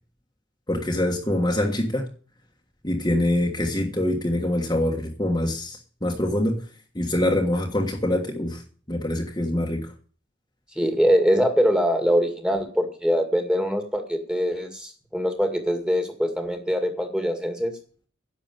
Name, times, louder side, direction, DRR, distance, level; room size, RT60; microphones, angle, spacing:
voice 1, 0.7-2.1 2.8-6.6 6.9-8.6 8.9-9.9, left 1 dB, 20° left, 0 dB, 1.5 m, -24 dB
voice 2, 10.8-17.7, equal, 5° right, 6 dB, 2.0 m, -23 dB
11.0 x 7.0 x 9.1 m, 0.43 s
head